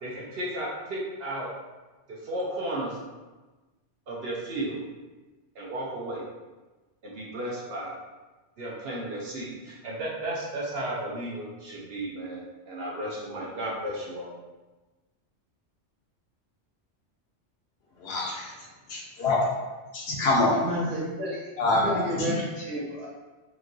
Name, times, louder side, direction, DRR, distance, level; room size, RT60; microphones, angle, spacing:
voice 1, 0.0-1.5 2.2-2.9 4.1-4.8 5.6-6.2 7.0-8.0 8.6-14.3, right 1 dB, 65° right, -4 dB, 0.8 m, -34 dB
voice 2, 18.0-18.5 18.9-19.4 19.9-20.6 21.6-22.3, left 2 dB, 70° left, -2 dB, 0.8 m, -25 dB
voice 3, 20.6-21.4 21.7-23.1, equal, 45° right, -7 dB, 1.1 m, -31 dB
3.0 x 2.6 x 2.5 m, 1.2 s
omnidirectional pair, 1.2 m